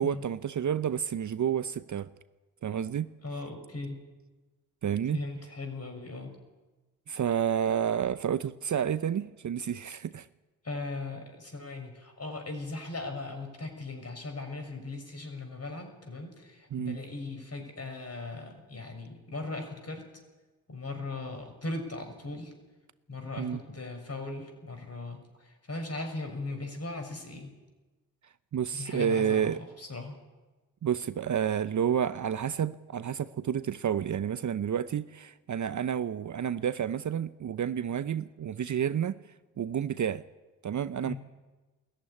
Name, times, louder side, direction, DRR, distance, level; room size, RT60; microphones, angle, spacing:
voice 1, 0.0-2.1 2.6-3.1 4.8-5.2 7.1-10.3 16.7-17.0 23.4-23.6 28.5-29.6 30.8-39.2 39.6-40.2 40.6-41.1, right 8 dB, 45° right, 0.8 m, -30 dB
voice 2, 3.2-4.0 5.1-6.3 10.6-20.1 20.7-22.5 23.1-25.2 25.7-27.5 28.7-29.5 29.8-30.1 41.0-41.2, left 2 dB, 35° left, 6.4 m, -38 dB
19.0 x 14.5 x 10.0 m
hypercardioid pair, 45°, 42 cm